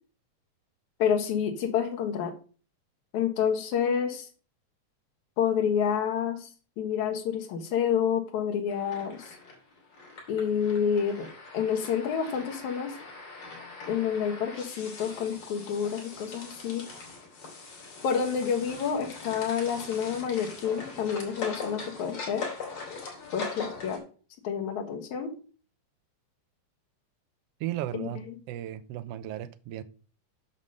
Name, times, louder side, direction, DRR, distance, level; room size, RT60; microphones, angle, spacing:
voice 1, 1.0-2.3 3.1-4.3 5.4-6.5 6.8-9.3 10.3-11.3 11.5-12.9 13.9-16.9 18.0-22.5 23.3-24.0 24.4-25.3 27.9-28.1, left 7 dB, 80° left, 2.6 m, -28 dB
sound 1, 8.7-24.0, left 4 dB, 55° left, 3.7 m, -41 dB
voice 2, 27.6-29.8, right 13 dB, 75° right, 1.5 m, -35 dB
7.4 x 5.3 x 6.4 m
omnidirectional pair, 3.3 m